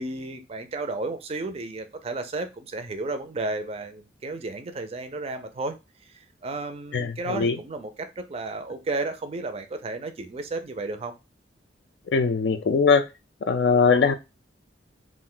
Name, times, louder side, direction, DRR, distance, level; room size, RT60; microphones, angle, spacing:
voice 1, 0.0-5.8 6.1-11.1, right 2 dB, 30° right, 8 dB, 0.4 m, -33 dB
voice 2, 6.9-7.6 12.1-13.0 13.5-14.1, left 5 dB, 60° left, 8 dB, 0.4 m, -21 dB
2.5 x 2.1 x 3.7 m, 0.26 s
head